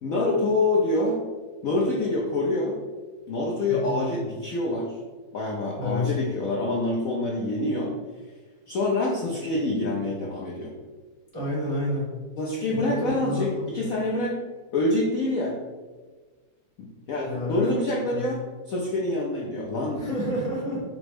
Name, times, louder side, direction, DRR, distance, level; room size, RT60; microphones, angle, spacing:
voice 1, 0.0-1.2 1.6-2.8 3.3-5.0 5.3-7.9 8.7-10.7 12.4-14.4 14.7-15.6 16.8-18.4 18.7-20.0, left 2 dB, 70° left, -2 dB, 0.8 m, -26 dB
voice 2, 3.7-4.0 5.8-6.1 11.3-12.1 12.8-13.9 17.2-17.7 18.1-18.3 19.9-20.8, left 1 dB, 25° right, -7 dB, 0.7 m, -29 dB
5.0 x 2.1 x 4.7 m, 1.4 s
omnidirectional pair, 2.1 m